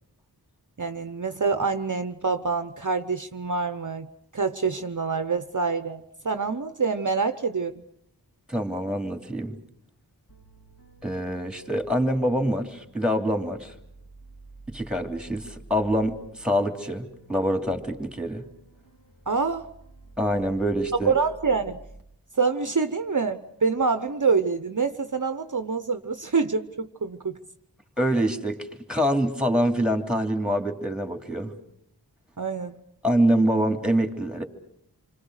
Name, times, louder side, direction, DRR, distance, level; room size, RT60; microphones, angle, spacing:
voice 1, 0.8-4.1 4.3-7.8 19.3-19.7 21.1-21.8 22.3-27.4 32.4-32.8, right 4 dB, 50° right, 10 dB, 0.9 m, -26 dB
voice 2, 8.5-9.6 11.0-13.7 14.7-18.4 20.2-21.1 28.0-31.5 33.0-34.4, equal, ahead, 5 dB, 3.0 m, -25 dB
sound 1, 10.3-22.0, right 2 dB, 55° left, 3.3 m, -50 dB
28.0 x 25.0 x 6.5 m, 0.75 s
wide cardioid pair, 45°, 40 cm